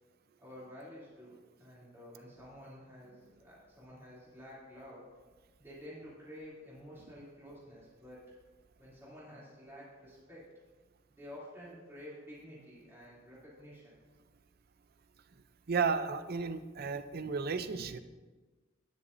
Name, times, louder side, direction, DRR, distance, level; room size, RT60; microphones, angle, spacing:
voice 1, 0.4-5.0 5.6-8.3 8.8-10.5 11.2-13.9, equal, 15° right, -9 dB, 2.9 m, -51 dB
voice 2, 15.7-18.0, right 5 dB, 50° right, 11 dB, 0.5 m, -33 dB
12.0 x 10.0 x 2.6 m, 1.3 s
head